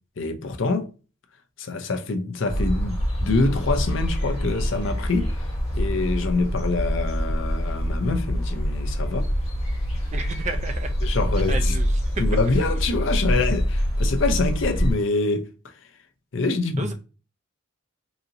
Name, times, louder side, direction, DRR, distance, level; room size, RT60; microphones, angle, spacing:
voice 1, 0.2-0.9 1.6-9.3 11.0-11.7 12.2-15.7 16.3-16.9, left 3 dB, 65° left, 0.6 m, -25 dB
sound 1, 2.5-14.9, equal, 30° left, 1.4 m, -25 dB
voice 2, 10.1-10.9 11.5-12.2 16.8-16.9, right 3 dB, 35° right, 0.5 m, -32 dB
3.9 x 2.8 x 2.6 m
head